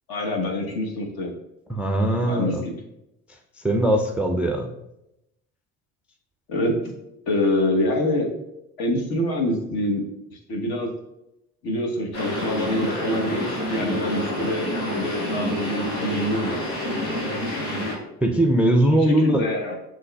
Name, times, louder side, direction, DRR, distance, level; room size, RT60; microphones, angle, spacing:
voice 1, 0.1-1.3 2.2-2.7 6.5-6.9 7.3-8.3 8.8-10.0 10.3-10.9 11.6-14.7 14.9-16.6 19.0-19.8, left 1 dB, 55° left, 2 dB, 1.2 m, -25 dB
voice 2, 1.7-2.6 3.6-4.7 18.2-19.4, right 1 dB, 5° right, 3 dB, 0.4 m, -20 dB
sound 1, 12.1-18.0, left 1 dB, 80° left, 1.2 m, -28 dB
7.5 x 3.1 x 2.2 m, 0.87 s
hypercardioid pair, 55°, 44 cm